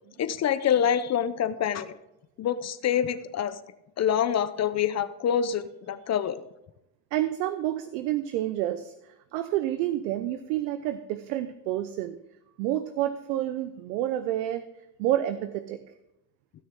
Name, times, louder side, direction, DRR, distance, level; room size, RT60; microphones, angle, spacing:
voice 1, 0.2-1.9 2.4-3.6 4.0-6.4, left 9 dB, 35° left, 13 dB, 0.6 m, -26 dB
voice 2, 7.1-12.2 12.6-14.6 15.0-15.8, right 13 dB, 75° right, 10 dB, 0.8 m, -29 dB
17.0 x 6.3 x 3.7 m, 0.88 s
supercardioid pair, 90°, 50 cm